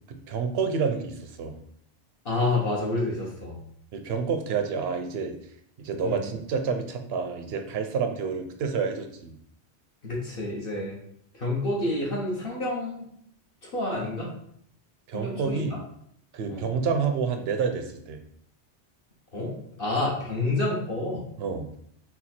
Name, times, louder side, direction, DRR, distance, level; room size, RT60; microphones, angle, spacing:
voice 1, 0.1-1.6 3.9-5.3 5.8-9.3 15.1-15.7 16.3-18.2 21.4-21.7, right 5 dB, 70° right, 6 dB, 0.8 m, -29 dB
voice 2, 2.2-3.6 6.0-6.2 10.0-11.0 11.3-13.1 13.6-14.3 15.1-15.8 16.5-16.7 19.3-21.3, left 2 dB, 55° left, -4 dB, 1.1 m, -29 dB
4.3 x 2.3 x 4.2 m, 0.69 s
omnidirectional pair, 1.1 m